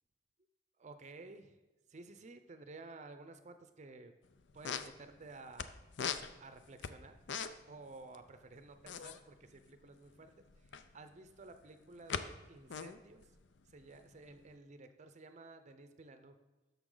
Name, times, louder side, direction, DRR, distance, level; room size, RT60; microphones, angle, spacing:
voice 1, 0.8-1.6 1.9-4.1 4.5-5.8 6.4-7.1 7.7-13.3 13.7-16.4, right 3 dB, 40° right, 9 dB, 0.5 m, -54 dB
sound 1, 4.2-4.3 4.5-5.7 5.9-7.8 8.0-8.2 8.4-10.9 11.5-12.2 12.5-14.4, left 6 dB, 75° left, 0.5 m, -41 dB
11.0 x 6.8 x 3.8 m, 1.2 s
head